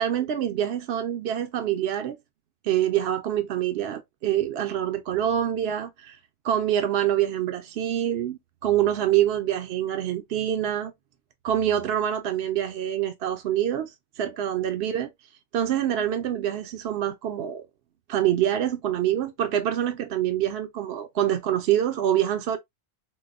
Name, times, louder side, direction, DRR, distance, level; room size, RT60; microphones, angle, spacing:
voice 1, 0.0-2.2 2.6-6.2 6.4-10.9 11.4-15.1 15.5-17.6 18.1-22.6, right 11 dB, 65° right, 0.7 m, -25 dB
4.5 x 2.1 x 2.4 m
omnidirectional pair, 1.3 m